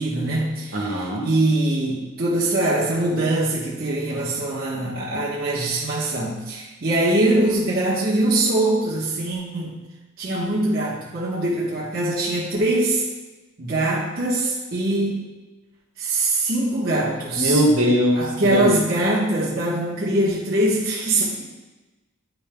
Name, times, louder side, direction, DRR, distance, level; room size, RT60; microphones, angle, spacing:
voice 1, 0.0-9.8 10.2-13.0 13.6-15.2 16.0-17.6 18.2-21.4, right 1 dB, 45° right, -8 dB, 1.2 m, -22 dB
voice 2, 0.7-1.2 17.3-18.7, equal, 70° right, -2 dB, 1.6 m, -20 dB
10.0 x 5.6 x 2.2 m, 1.2 s
head